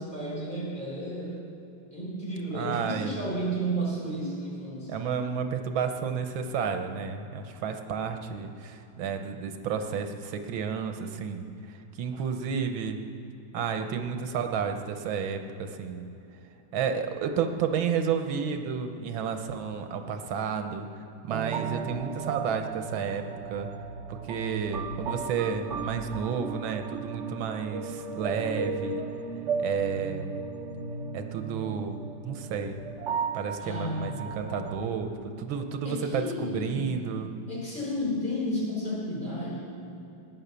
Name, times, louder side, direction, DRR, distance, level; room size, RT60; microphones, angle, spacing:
voice 1, 0.0-1.3 1.9-4.9 14.3-14.4 15.8-15.9 33.6-34.3 35.8-36.9 37.5-39.7, equal, 25° left, -5 dB, 4.6 m, -32 dB
voice 2, 2.5-3.2 4.9-11.5 12.0-13.0 13.5-16.1 16.7-20.9 21.3-23.2 23.5-23.7 24.1-29.0 29.6-30.4 31.1-32.8 33.3-35.1 35.4-37.3, right 6 dB, 85° right, 6 dB, 1.7 m, -31 dB
sound 1, 21.3-34.9, right 5 dB, 60° right, 0.8 m, -35 dB
17.5 x 9.8 x 6.8 m, 2.9 s
omnidirectional pair, 2.1 m